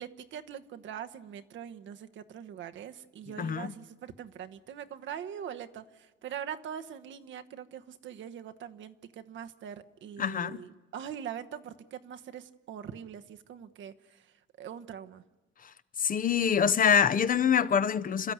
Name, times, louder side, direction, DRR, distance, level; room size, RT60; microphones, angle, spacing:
voice 1, 0.0-14.3 14.6-15.2, right 9 dB, 70° right, 1.1 m, -42 dB
voice 2, 3.4-3.7 10.2-10.6 16.0-18.3, left 7 dB, 45° left, 0.8 m, -25 dB
29.5 x 13.0 x 9.5 m
cardioid pair, 90°, 20 cm